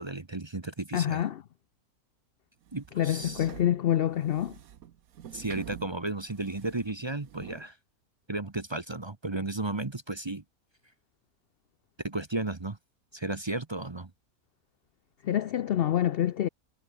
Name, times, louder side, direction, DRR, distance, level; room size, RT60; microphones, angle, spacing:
voice 1, 0.0-1.2 2.7-3.5 5.3-7.8 8.3-10.4 12.0-12.8 13.1-14.1, right 2 dB, 20° right, 0.8 m, -34 dB
voice 2, 0.9-1.4 3.0-4.6 15.2-16.5, left 11 dB, 70° left, 0.5 m, -27 dB
sound 1, 2.7-7.7, right 10 dB, 70° right, 1.4 m, -47 dB
omnidirectional pair, 1.6 m